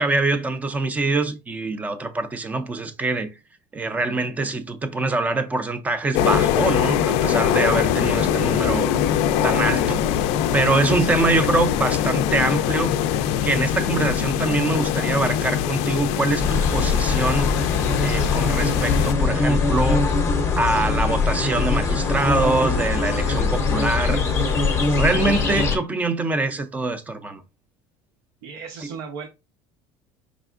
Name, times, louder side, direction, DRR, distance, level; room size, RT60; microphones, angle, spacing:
voice 1, 0.0-3.3 3.7-8.9 9.4-10.0 10.3-12.9 13.4-17.5 18.0-20.1 20.6-24.2 25.0-27.4, right 3 dB, 10° right, 0.4 m, -24 dB
sound 1, 6.1-19.1, left 9 dB, 55° left, 0.4 m, -22 dB
voice 2, 10.9-11.2 28.4-29.3, right 5 dB, 85° right, 0.8 m, -36 dB
sound 2, 16.4-25.8, left 4 dB, 20° left, 0.7 m, -22 dB
4.9 x 3.4 x 2.4 m
cardioid pair, 170°, 13 cm